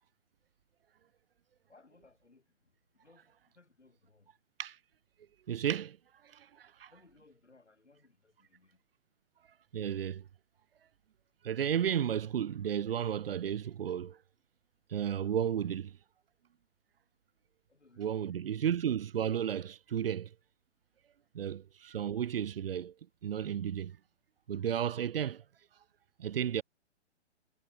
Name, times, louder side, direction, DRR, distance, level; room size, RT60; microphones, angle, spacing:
voice 1, 1.7-2.4 3.0-4.3 6.9-8.8 17.7-18.2, left 3 dB, 80° left, 6.2 m, -63 dB
voice 2, 5.5-6.0 6.2-6.9 9.7-10.2 11.4-14.2 14.9-16.0 18.0-20.3 21.3-22.9 23.2-24.0 24.5-25.4 26.2-26.6, right 9 dB, 55° right, 0.7 m, -33 dB
figure-of-eight pair, 125°, 34 cm